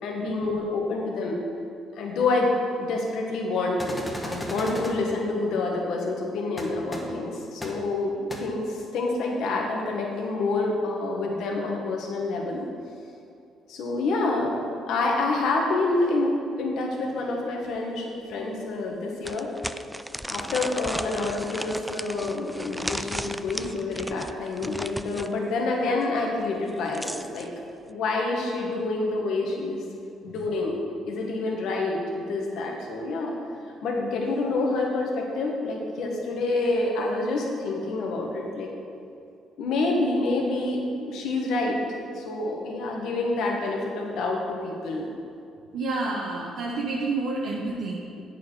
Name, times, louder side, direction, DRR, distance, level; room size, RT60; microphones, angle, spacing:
voice 1, 0.0-1.4 1.9-2.5 2.8-12.7 13.7-19.5 20.2-27.5 27.9-29.8 30.2-33.3 33.8-38.7 39.6-41.8 42.1-45.1, left 2 dB, 75° left, 0 dB, 1.6 m, -27 dB
sound 1, 3.8-4.9 6.6-6.7 6.9-7.0 7.6-7.7 8.3-8.4, left 1 dB, 15° left, 1.6 m, -34 dB
sound 2, 17.8-17.9 18.3-18.4 19.2-25.3 26.6-27.5, equal, 5° right, 0.3 m, -35 dB
voice 2, 45.7-48.0, right 3 dB, 75° right, -3 dB, 1.1 m, -29 dB
8.9 x 6.7 x 4.9 m, 2.5 s
cardioid pair, 80°, 0 cm